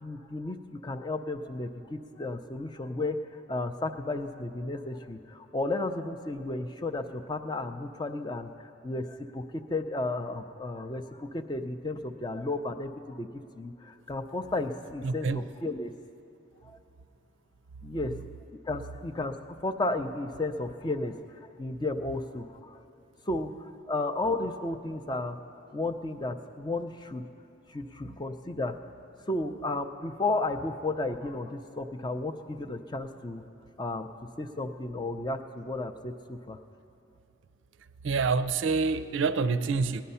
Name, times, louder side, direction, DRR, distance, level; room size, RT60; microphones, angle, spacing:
voice 1, 0.0-3.2 3.5-13.3 13.5-15.9 16.6-16.8 17.8-18.1 18.7-19.3 19.6-22.8 23.3-23.5 23.9-25.4 25.7-27.2 27.7-28.7 29.3-33.4 33.8-34.1 34.4-36.6, left 2 dB, 20° left, 7 dB, 0.5 m, -33 dB
voice 2, 15.0-15.5 38.0-40.0, right 4 dB, 70° right, 12 dB, 0.4 m, -27 dB
18.0 x 10.5 x 5.6 m, 2.6 s
head